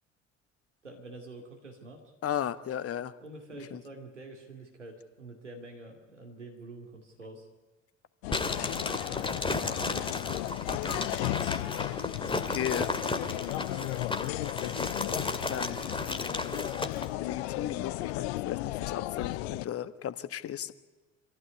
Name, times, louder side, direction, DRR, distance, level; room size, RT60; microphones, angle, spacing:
voice 1, 0.8-2.0 3.2-7.5, right 2 dB, 85° right, 2 dB, 2.5 m, -46 dB
voice 2, 2.2-3.1 3.7-3.8 12.5-12.9 15.2-15.8 17.2-20.7, left 10 dB, 40° left, 14 dB, 1.4 m, -35 dB
sound 1, 8.2-19.7, left 17 dB, 65° left, 0.7 m, -35 dB
sound 2, 8.3-17.1, left 3 dB, 15° left, 2.5 m, -34 dB
25.0 x 16.0 x 9.5 m, 1.2 s
figure-of-eight pair, 55°, 35 cm